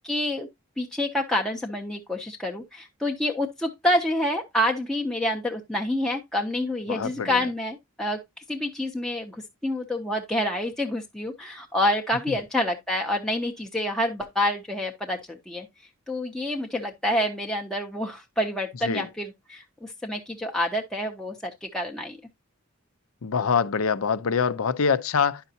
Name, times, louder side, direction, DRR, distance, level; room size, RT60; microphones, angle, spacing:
voice 1, 0.0-0.5 0.8-8.2 8.5-15.7 16.1-22.2, left 1 dB, ahead, 0.5 m, -28 dB
voice 2, 6.9-7.4 18.8-19.1 23.2-25.4, left 6 dB, 85° left, 0.5 m, -24 dB
10.0 x 5.8 x 2.7 m
head